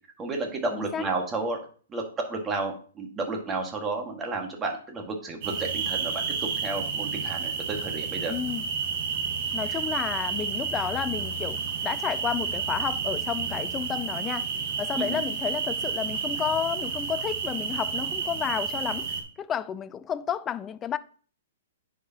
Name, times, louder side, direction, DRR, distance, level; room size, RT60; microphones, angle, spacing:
voice 1, 0.2-1.6 1.9-6.2 6.6-8.3 15.0-15.2, right 3 dB, 20° right, 1.7 m, -32 dB
voice 2, 0.7-1.1 8.3-8.7 9.5-14.5 14.8-21.0, left 8 dB, 20° left, 0.4 m, -31 dB
sound 1, 5.4-19.2, right 6 dB, 45° right, 1.4 m, -31 dB
9.9 x 4.8 x 2.9 m
hypercardioid pair, 135°, 0 cm